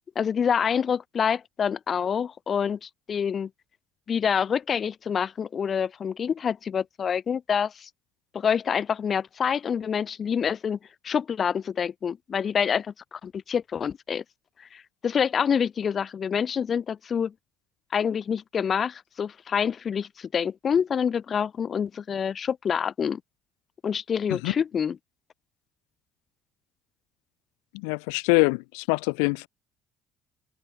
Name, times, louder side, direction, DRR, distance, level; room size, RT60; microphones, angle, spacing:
voice 1, 0.2-3.5 4.1-7.9 8.3-10.8 11.0-14.2 14.7-17.3 17.9-23.2 23.8-25.0, left 7 dB, 45° left, 3.8 m, -27 dB
voice 2, 27.7-29.5, left 40 dB or more, 75° left, 0.5 m, -24 dB
hypercardioid pair, 55°, 0 cm